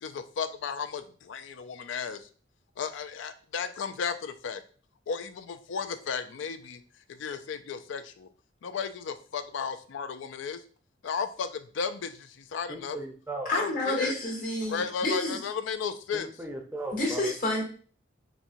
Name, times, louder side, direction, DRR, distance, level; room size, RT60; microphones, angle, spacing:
voice 1, 0.0-2.3 2.8-4.6 5.1-6.8 7.2-8.3 8.6-10.6 11.0-13.0 13.5-14.1 14.7-16.3, left 6 dB, 80° left, 10 dB, 0.4 m, -34 dB
voice 2, 12.7-13.5 16.1-17.3, right 2 dB, 10° right, 2 dB, 0.5 m, -37 dB
voice 3, 13.4-15.4 16.9-17.6, left 1 dB, 45° left, -2 dB, 1.1 m, -29 dB
4.2 x 2.7 x 2.5 m, 0.42 s
head